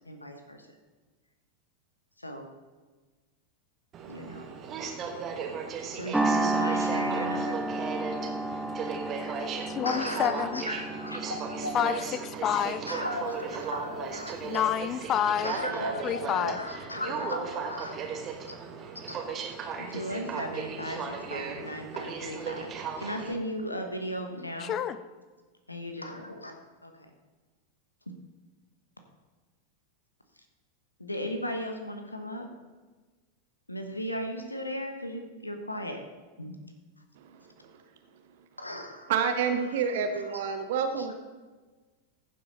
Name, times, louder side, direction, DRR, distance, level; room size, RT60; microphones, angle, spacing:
voice 1, 0.1-0.7 2.2-2.5 4.1-4.5 5.9-7.6 9.8-12.0 12.9-14.6 15.4-17.9 18.5-18.6 19.1-19.2 19.8-24.7 25.7-26.9 31.0-32.5 33.7-36.0 36.4-36.6 38.6-39.1 39.6-40.5 41.0-41.1, equal, 85° left, 6 dB, 1.1 m, -36 dB
Aircraft, 3.9-23.3, right 5 dB, 30° right, 1.4 m, -37 dB
sound 1, 6.1-14.6, right 2 dB, 5° right, 0.7 m, -32 dB
voice 2, 9.2-10.6 11.7-11.9 12.4-12.8 14.4-15.5 16.0-16.6 24.6-25.0, left 9 dB, 30° left, 13 dB, 0.5 m, -28 dB
voice 3, 39.1-41.1, right 6 dB, 55° right, 7 dB, 0.9 m, -28 dB
15.5 x 7.6 x 4.1 m, 1.3 s
figure-of-eight pair, 90°, 0 cm